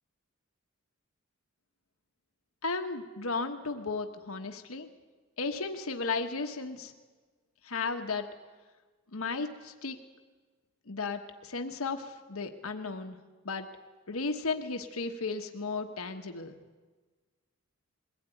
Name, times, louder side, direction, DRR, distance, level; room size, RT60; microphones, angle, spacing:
voice 1, 2.6-4.9 5.4-6.9 7.6-8.3 9.1-10.0 10.9-13.2 13.4-13.7 14.1-16.5, left 4 dB, 85° left, 5 dB, 1.2 m, -34 dB
21.5 x 16.5 x 9.1 m, 1.4 s
head